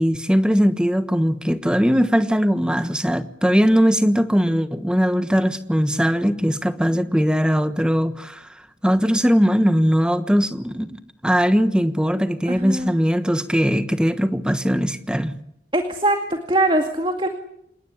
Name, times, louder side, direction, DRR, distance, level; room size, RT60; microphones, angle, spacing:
voice 1, 0.0-15.3, equal, 5° right, 1.3 m, -20 dB
voice 2, 12.5-13.0 15.7-17.3, right 1 dB, 30° right, 2.1 m, -22 dB
27.5 x 20.0 x 9.9 m
head